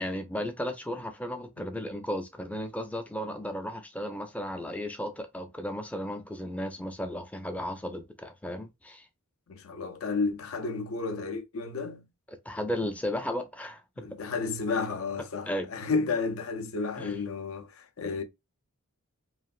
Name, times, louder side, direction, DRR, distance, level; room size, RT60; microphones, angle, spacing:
voice 1, 0.0-9.1 12.5-14.1 15.5-15.7 17.0-17.1, equal, 5° left, 0.4 m, -34 dB
voice 2, 9.5-12.1 14.0-18.2, left 4 dB, 65° left, 0.6 m, -32 dB
3.1 x 2.4 x 2.3 m
head